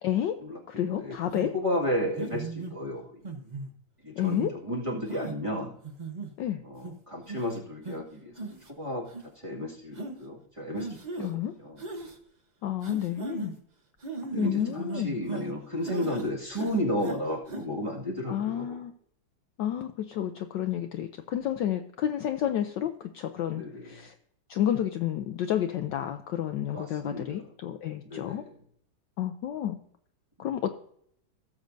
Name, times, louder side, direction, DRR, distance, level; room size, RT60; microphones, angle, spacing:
voice 1, 0.0-0.4 0.7-1.5 4.2-4.5 6.4-6.6 11.2-11.5 12.6-13.5 14.4-15.2 18.3-18.9 19.6-24.1 24.5-28.4 29.2-29.8 30.4-30.7, left 11 dB, 70° left, 7 dB, 1.1 m, -30 dB
sound 1, 1.3-1.5 2.2-2.7 3.2-3.7 4.3-4.5 5.1-5.3 5.8-6.3 6.8-6.9 7.3-7.5 7.8-8.0 8.4-8.7 9.1-9.2 10.0-10.1 10.8-11.3 11.8-12.2 12.8-13.5 14.0-15.5 15.8-16.3 16.5-17.2 17.5-17.6, right 3 dB, 35° right, 0.6 m, -37 dB
voice 2, 1.5-3.2 4.0-5.7 6.6-8.3 8.7-9.0 9.4-11.3 11.6-11.8 14.3-18.8 23.5-24.0 26.7-27.3 28.1-28.5, left 1 dB, 15° right, -3 dB, 1.9 m, -33 dB
17.5 x 7.4 x 2.6 m, 0.67 s
omnidirectional pair, 2.3 m